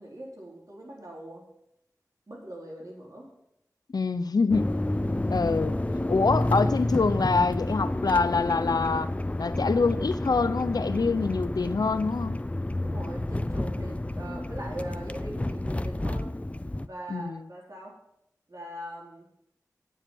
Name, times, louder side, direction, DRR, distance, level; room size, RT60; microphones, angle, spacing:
voice 1, 0.0-1.4 2.3-3.3 5.1-5.3 12.8-16.3 16.8-17.9 18.5-19.3, right 1 dB, 60° right, -3 dB, 4.2 m, -41 dB
voice 2, 3.9-4.7 5.3-5.8 6.1-9.1 9.4-12.4 17.1-17.4, left 4 dB, 85° left, 13 dB, 0.6 m, -25 dB
sound 1, 4.5-16.9, left 1 dB, 20° left, 0.5 m, -30 dB
9.4 x 7.2 x 7.4 m, 0.78 s
wide cardioid pair, 40°, 6 cm